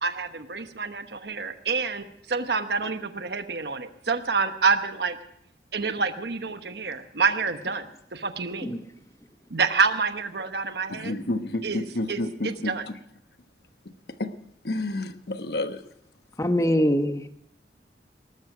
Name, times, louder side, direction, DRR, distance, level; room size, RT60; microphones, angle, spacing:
voice 1, 0.0-5.2 5.7-8.8 9.5-11.2 11.6-12.8, right 4 dB, 70° right, 1.0 m, -28 dB
voice 2, 10.9-13.0 14.2-14.3 14.6-15.8, left 2 dB, 65° left, 1.1 m, -30 dB
voice 3, 16.4-17.3, equal, 20° left, 0.9 m, -23 dB
19.5 x 12.5 x 5.0 m
head